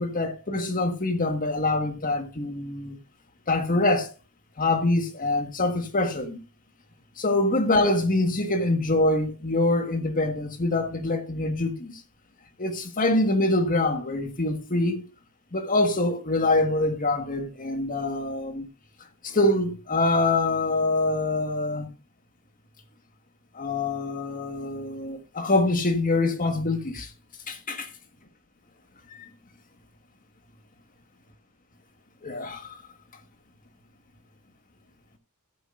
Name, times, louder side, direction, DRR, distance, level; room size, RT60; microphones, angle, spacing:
voice 1, 0.0-3.0 3.5-4.1 4.6-6.4 7.2-12.0 12.6-15.1 15.5-18.7 19.2-21.9 23.5-27.1 27.5-27.9 29.1-29.3 32.2-32.8, left 2 dB, 40° left, 1.7 m, -25 dB
14.5 x 9.1 x 2.6 m
head